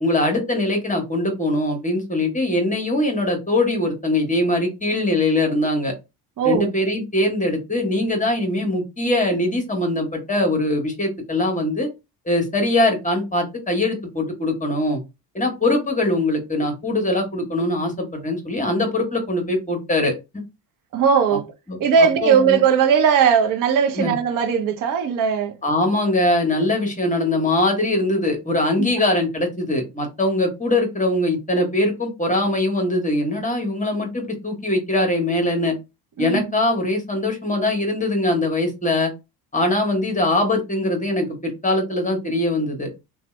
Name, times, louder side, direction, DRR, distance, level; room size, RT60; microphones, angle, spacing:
voice 1, 0.0-5.9 6.4-11.9 12.2-15.0 15.3-20.4 21.3-21.4 21.7-22.6 23.9-24.1 25.6-35.7 36.2-39.1 39.5-42.9, left 1 dB, 15° left, 1.2 m, -22 dB
voice 2, 6.4-6.7 20.9-21.5 21.8-25.5 28.8-28.9 36.2-36.5, right 7 dB, 40° right, 0.8 m, -18 dB
2.6 x 2.4 x 3.2 m
hypercardioid pair, 65°, 48 cm